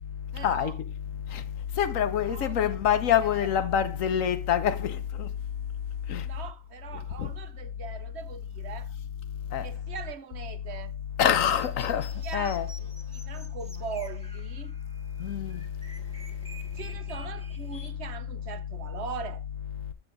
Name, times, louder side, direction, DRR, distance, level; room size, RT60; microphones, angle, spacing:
voice 1, 0.3-0.7 2.3-3.0 3.3-3.7 6.2-8.9 9.6-10.9 12.2-12.6 12.8-14.8 16.7-19.4, right 6 dB, 60° right, 1.0 m, -41 dB
voice 2, 1.8-5.3 6.1-6.2 7.2-7.3 9.5-9.7 11.2-12.1 12.3-12.7 15.2-15.6, left 9 dB, 80° left, 1.3 m, -25 dB
sound 1, 11.3-17.9, equal, 5° left, 1.6 m, -50 dB
9.1 x 7.0 x 3.8 m
omnidirectional pair, 1.4 m